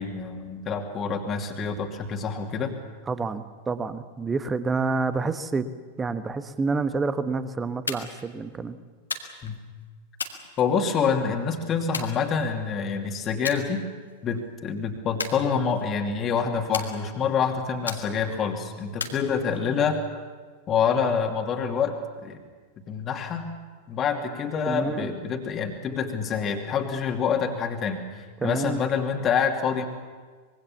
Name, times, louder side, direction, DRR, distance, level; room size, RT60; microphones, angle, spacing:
voice 1, 0.0-2.8 9.4-9.6 10.6-13.9 14.2-20.0 20.7-22.4 22.9-23.5 23.9-29.9, left 6 dB, 30° left, 3 dB, 2.6 m, -27 dB
voice 2, 3.1-5.7 6.0-8.8 24.7-25.1 28.4-28.8, right 4 dB, 15° right, 11 dB, 1.3 m, -28 dB
sound 1, 7.9-8.3 9.1-9.6 10.2-11.1 11.9-12.8 13.5-13.7 14.1-14.4 15.2-16.0 16.7-17.4 17.9-18.4 19.0-19.8, left 4 dB, 75° left, 2.1 m, -35 dB
25.0 x 22.5 x 7.2 m, 1.5 s
figure-of-eight pair, 90°, 0 cm